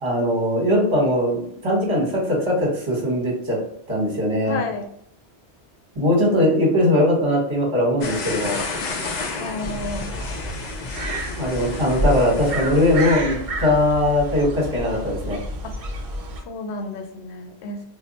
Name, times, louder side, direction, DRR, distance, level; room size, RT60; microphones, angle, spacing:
voice 1, 0.0-3.6 3.9-4.6 5.9-8.6 11.4-15.4, left 1 dB, 30° right, -3 dB, 1.1 m, -20 dB
voice 2, 4.5-4.9 9.4-10.1 15.6-15.7 16.5-17.8, left 3 dB, 85° left, 4 dB, 0.9 m, -31 dB
sound 1, 8.0-13.3, left 3 dB, 55° left, 0.5 m, -32 dB
sound 2, 9.6-16.4, right 1 dB, 50° right, 0.4 m, -29 dB
2.2 x 2.1 x 3.9 m, 0.69 s
omnidirectional pair, 1.1 m